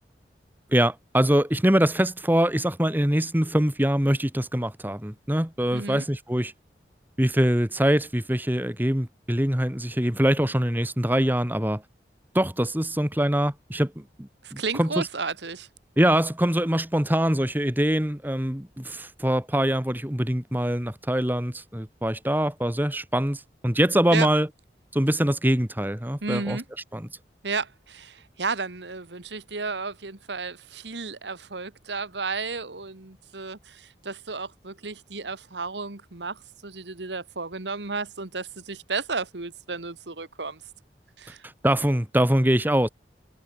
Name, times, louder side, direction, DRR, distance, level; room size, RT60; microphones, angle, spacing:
voice 1, 0.7-6.5 7.2-11.8 12.3-15.1 16.0-24.5 24.9-26.6 26.9-27.1 41.4-42.9, right 1 dB, 10° right, 1.6 m, -24 dB
voice 2, 5.7-6.1 14.4-15.7 24.1-24.3 26.2-26.6 27.4-40.6 41.2-41.4, right 4 dB, 90° right, 1.8 m, -33 dB
head